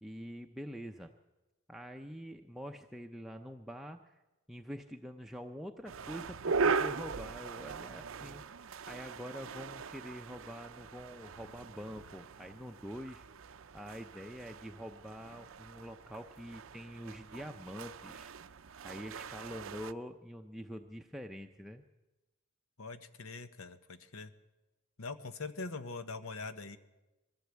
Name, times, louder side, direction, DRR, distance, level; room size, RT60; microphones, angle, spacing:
voice 1, 0.0-1.1 1.7-4.2 4.5-8.4 8.9-13.2 13.7-18.3 18.8-21.8, equal, ahead, 3 dB, 0.6 m, -45 dB
sound 1, 5.9-19.9, right 5 dB, 70° right, 0.6 m, -40 dB
voice 2, 22.8-24.3 25.0-26.8, left 3 dB, 80° left, 11 dB, 1.2 m, -43 dB
21.5 x 15.5 x 8.3 m, 1.1 s
head